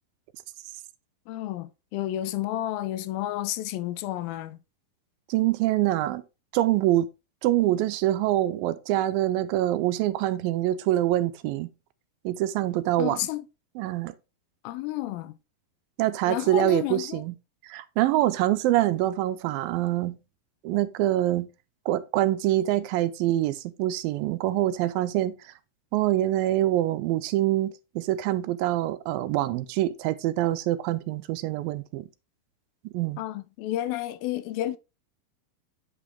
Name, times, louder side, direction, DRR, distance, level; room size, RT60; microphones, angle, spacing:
voice 1, 1.3-4.6 13.0-13.5 14.6-15.4 16.3-17.2 33.2-34.8, left 14 dB, 85° left, 2.4 m, -31 dB
voice 2, 5.3-6.2 6.5-7.1 7.4-11.7 12.2-13.2 13.8-14.1 16.0-17.3 17.6-20.2 20.6-21.5 21.9-25.3 25.9-32.1 32.8-33.2, right 14 dB, 85° right, 2.3 m, -25 dB
8.4 x 5.0 x 3.3 m
omnidirectional pair, 4.2 m